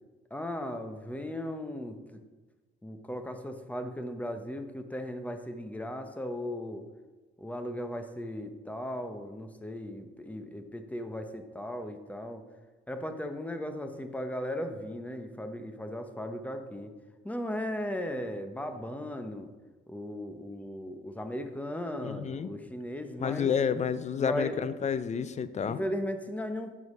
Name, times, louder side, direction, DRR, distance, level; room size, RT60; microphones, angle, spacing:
voice 1, 0.3-2.2 2.8-6.8 7.4-12.4 12.9-16.9 17.2-19.5 19.9-23.5 24.2-24.6 25.7-26.8, left 1 dB, 5° left, 7 dB, 0.8 m, -37 dB
voice 2, 22.0-22.5 23.2-25.8, left 7 dB, 35° left, 14 dB, 0.5 m, -30 dB
8.3 x 4.6 x 5.4 m, 1.3 s
cardioid pair, 90°, 20 cm